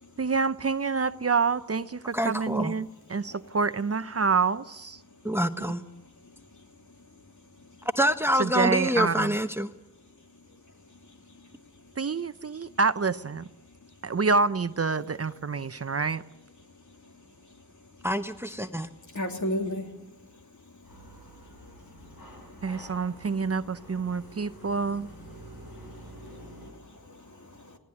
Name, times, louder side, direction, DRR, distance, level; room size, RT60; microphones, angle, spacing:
voice 1, 0.2-5.0 5.6-5.8 8.3-9.4 12.0-13.5 14.0-16.2 22.6-25.1, right 4 dB, 45° right, 13 dB, 0.7 m, -27 dB
voice 2, 2.1-2.7 5.2-5.8 8.0-9.7 18.0-18.9, equal, 5° right, 9 dB, 1.0 m, -26 dB
voice 3, 19.1-19.9 21.6-21.7 25.7-27.8, left 1 dB, 55° left, 2 dB, 3.2 m, -36 dB
sound 1, 20.8-26.7, equal, 85° left, 7.2 m, -48 dB
19.5 x 17.5 x 9.7 m, 1.0 s
cardioid pair, 45°, 35 cm